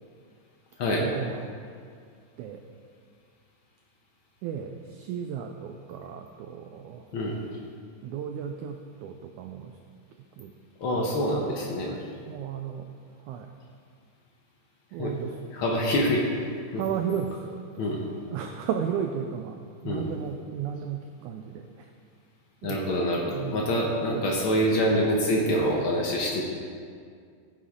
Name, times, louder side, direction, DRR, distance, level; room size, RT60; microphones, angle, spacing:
voice 1, 1.0-1.5 2.4-2.6 4.4-7.1 8.0-9.8 10.4-10.6 10.9-11.5 11.8-12.9 13.3-13.5 14.9-15.4 16.1-16.2 16.7-17.8 18.3-21.9 22.6-23.0 23.2-24.3, right 8 dB, 85° right, 4 dB, 1.7 m, -35 dB
voice 2, 10.8-11.9 15.0-15.2 15.5-16.2 16.7-16.8 17.8-18.0 19.8-20.1 22.6-26.4, equal, 85° left, -2 dB, 1.1 m, -26 dB
15.0 x 8.4 x 3.7 m, 2.2 s
omnidirectional pair, 4.1 m